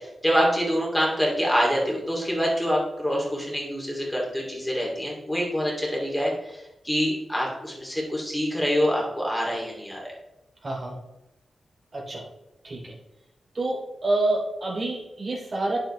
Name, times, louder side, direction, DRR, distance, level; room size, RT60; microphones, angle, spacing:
voice 1, 0.0-10.0, equal, 5° left, -3 dB, 2.8 m, -26 dB
voice 2, 10.6-11.0 11.9-12.2 12.6-12.9 13.5-15.8, right 2 dB, 50° right, -3 dB, 3.2 m, -28 dB
8.9 x 7.4 x 3.3 m, 0.89 s
cardioid pair, 70°, 0 cm